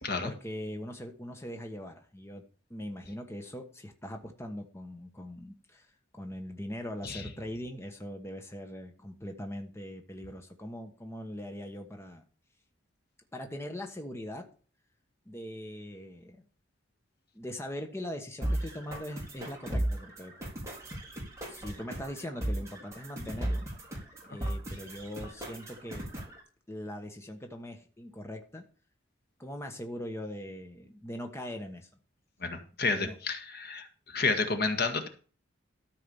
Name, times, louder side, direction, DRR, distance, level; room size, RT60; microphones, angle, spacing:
voice 1, 0.2-2.4 2.7-12.2 13.3-14.5 15.3-16.4 17.3-20.3 21.5-23.7 24.3-26.0 26.7-28.6 29.4-31.9 33.0-33.2, equal, 15° left, 4 dB, 1.2 m, -41 dB
sound 1, 18.4-26.4, right 1 dB, 15° right, 3.7 m, -36 dB
voice 2, 32.4-33.9 34.1-35.1, left 3 dB, 55° left, 7 dB, 1.8 m, -30 dB
13.5 x 4.8 x 7.0 m, 0.38 s
head